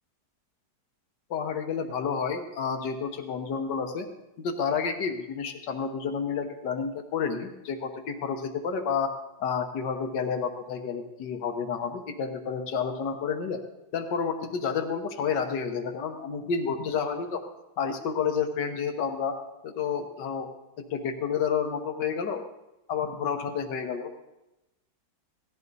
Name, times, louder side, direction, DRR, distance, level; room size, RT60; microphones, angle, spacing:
voice 1, 1.3-4.1 4.4-9.1 9.4-13.6 13.9-17.4 17.8-19.4 19.6-20.5 20.9-22.4 22.9-24.1, left 6 dB, 85° left, 6 dB, 1.7 m, -30 dB
17.5 x 13.5 x 4.0 m, 0.97 s
omnidirectional pair, 1.8 m